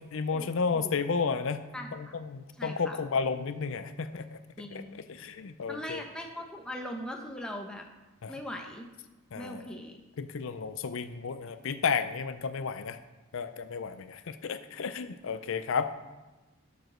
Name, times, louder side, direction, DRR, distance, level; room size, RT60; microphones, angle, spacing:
voice 1, 0.0-4.4 4.7-4.8 5.1-6.0 8.2-8.3 9.3-9.7 10.2-13.0 13.3-15.9, left 5 dB, 60° left, 10 dB, 0.5 m, -32 dB
voice 2, 1.7-2.2 2.6-3.0 4.6-5.0 5.7-7.9 8.3-8.9 9.3-10.0, left 1 dB, 5° left, 1 dB, 0.9 m, -40 dB
12.0 x 5.0 x 6.3 m, 1.1 s
head